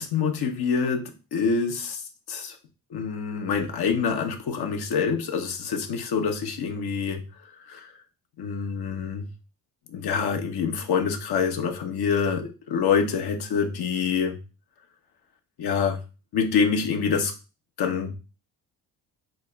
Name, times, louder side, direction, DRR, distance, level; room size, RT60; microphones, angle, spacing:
voice 1, 0.0-2.0 2.3-2.6 2.9-7.2 7.7-7.9 8.4-9.3 9.9-14.4 15.6-16.0 16.3-17.3 17.8-18.2, left 6 dB, 65° left, 3 dB, 1.0 m, -26 dB
5.2 x 2.0 x 3.3 m, 0.32 s
supercardioid pair, 65°, 42 cm